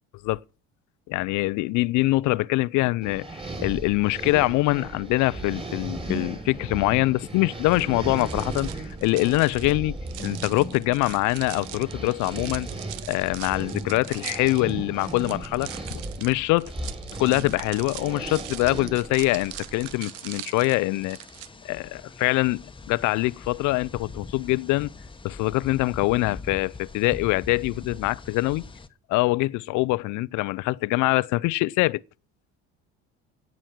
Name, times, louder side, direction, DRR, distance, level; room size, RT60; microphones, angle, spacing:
voice 1, 1.1-3.3 3.6-12.7 13.1-16.7 17.2-21.2 21.6-24.9 25.2-28.6 29.1-32.0, left 20 dB, 65° left, 0.6 m, -24 dB
sound 1, 3.0-20.0, right 2 dB, 15° right, 4.6 m, -36 dB
sound 2, 7.7-21.5, right 15 dB, 80° right, 0.9 m, -41 dB
sound 3, 19.3-28.9, left 3 dB, 15° left, 1.2 m, -43 dB
17.5 x 6.2 x 8.9 m
supercardioid pair, 75°, 32 cm